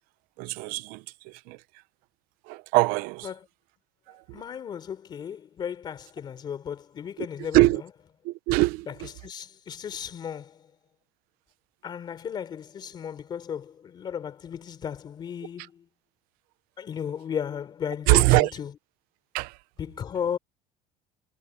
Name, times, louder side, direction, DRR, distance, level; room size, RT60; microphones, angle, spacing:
voice 1, 0.4-1.6 2.5-3.3 4.1-4.4 7.2-7.3 7.5-7.8 8.2-9.1 18.1-18.5 19.3-19.6, right 21 dB, 75° right, 0.7 m, -23 dB
voice 2, 4.3-7.7 8.9-10.7 11.8-15.9 16.8-18.7 19.8-20.4, left 8 dB, 30° left, 3.6 m, -35 dB
cardioid pair, 175°, 15 cm